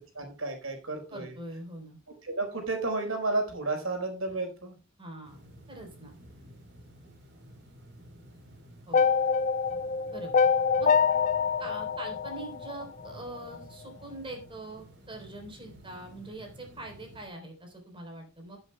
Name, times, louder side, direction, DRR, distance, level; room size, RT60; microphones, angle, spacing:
voice 1, 0.1-1.3 2.2-4.7, right 2 dB, 85° right, 3 dB, 4.3 m, -32 dB
voice 2, 1.1-2.0 5.0-5.4 5.7-6.1 8.9-9.1 10.1-10.4 10.8-10.9 11.6-18.6, right 2 dB, 25° right, 2 dB, 3.6 m, -43 dB
sound 1, 5.2-17.3, right 1 dB, 60° right, 3.7 m, -52 dB
sound 2, 8.9-13.1, left 6 dB, 40° left, 0.5 m, -25 dB
17.5 x 7.9 x 2.2 m, 0.36 s
head